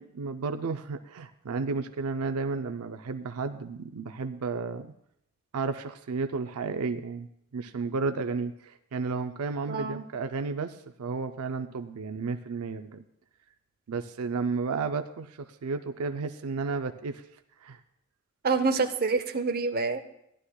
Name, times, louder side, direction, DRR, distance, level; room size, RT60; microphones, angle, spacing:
voice 1, 0.0-4.9 5.5-13.0 13.9-17.2 17.6-17.8, right 4 dB, 85° right, 9 dB, 0.5 m, -32 dB
voice 2, 9.7-10.0 18.4-20.0, right 4 dB, 45° right, 6 dB, 0.7 m, -27 dB
16.5 x 11.5 x 2.3 m, 0.76 s
head